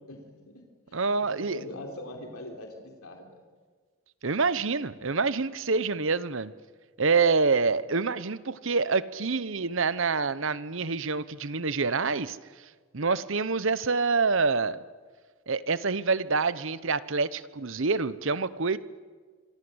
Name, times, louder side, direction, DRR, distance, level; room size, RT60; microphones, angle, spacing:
voice 1, 0.1-3.4, left 1 dB, 80° left, 3 dB, 3.7 m, -43 dB
voice 2, 0.9-1.6 4.2-6.5 7.0-12.4 12.9-14.8 15.5-18.8, right 4 dB, 60° right, 16 dB, 0.9 m, -26 dB
26.0 x 25.5 x 8.0 m, 1.5 s
head